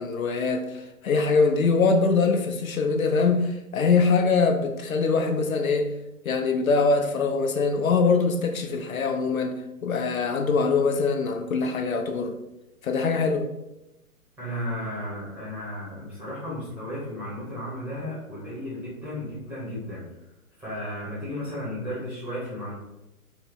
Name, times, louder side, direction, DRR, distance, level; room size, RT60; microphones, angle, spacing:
voice 1, 0.0-5.9 6.2-12.4 12.8-13.5, left 4 dB, 65° left, 0.6 m, -23 dB
voice 2, 14.4-20.1 20.6-22.8, left 1 dB, 5° right, 0.8 m, -34 dB
4.3 x 2.1 x 3.8 m
figure-of-eight pair, 130°, 45 cm